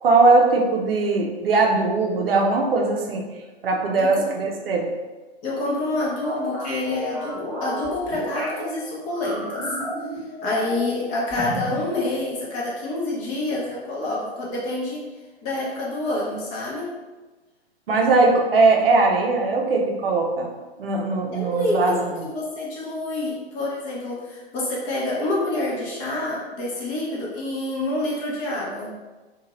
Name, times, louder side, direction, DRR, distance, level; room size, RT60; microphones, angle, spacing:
voice 1, 0.0-3.2 3.6-4.9 17.9-20.5 20.8-22.0, right 3 dB, 65° right, 0 dB, 0.6 m, -20 dB
voice 2, 4.0-4.3 5.4-9.7 10.4-15.0 15.4-16.9 21.3-28.9, left 2 dB, 25° left, -5 dB, 0.7 m, -27 dB
sound 1, 6.2-8.6 9.1-11.0 11.3-11.9, equal, 5° left, 1.0 m, -32 dB
2.7 x 2.4 x 2.9 m, 1.2 s
figure-of-eight pair, 120°, 31 cm